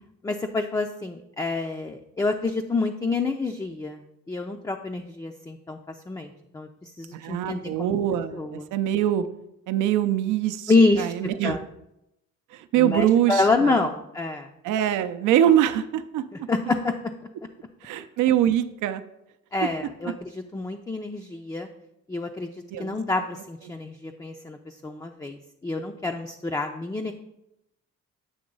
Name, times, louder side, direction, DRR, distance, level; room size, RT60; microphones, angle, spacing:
voice 1, 0.2-8.0 8.3-8.7 10.7-11.1 11.4-11.6 12.8-14.5 16.3-16.9 19.5-21.7 22.1-22.5 22.8-25.4 25.6-27.1, left 3 dB, 10° left, 4 dB, 0.4 m, -27 dB
voice 2, 7.1-9.2 9.7-10.7 11.0-11.6 12.5-13.8 14.6-16.5 17.8-19.0 22.7-23.0, right 11 dB, 80° right, 10 dB, 0.5 m, -23 dB
7.9 x 3.1 x 5.3 m, 0.85 s
cardioid pair, 90°, 30 cm